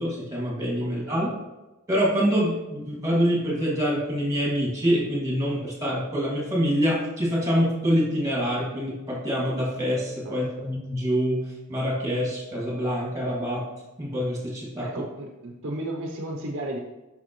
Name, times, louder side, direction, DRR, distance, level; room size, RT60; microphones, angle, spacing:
voice 1, 0.0-1.3 1.9-13.7 14.0-14.8, equal, 15° right, -4 dB, 2.5 m, -25 dB
voice 2, 1.0-1.3 10.2-10.4 14.8-16.8, right 1 dB, 60° right, 1 dB, 0.9 m, -34 dB
8.1 x 5.9 x 3.2 m, 1.1 s
head